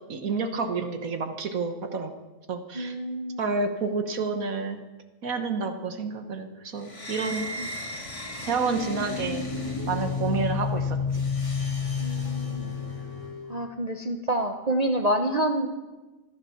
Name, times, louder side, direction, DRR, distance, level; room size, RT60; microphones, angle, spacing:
voice 1, 0.1-2.1 2.5-2.9 3.4-4.8 5.2-7.5 8.5-9.5 9.9-11.2, right 4 dB, 65° right, 7 dB, 1.6 m, -29 dB
voice 2, 2.7-3.5 7.6-7.7 10.3-10.4 12.0-12.7 13.5-15.7, right 1 dB, 30° right, 4 dB, 0.8 m, -28 dB
sound 1, 6.8-13.5, left 4 dB, 20° left, 2.3 m, -31 dB
15.0 x 12.0 x 7.0 m, 1.2 s
omnidirectional pair, 1.6 m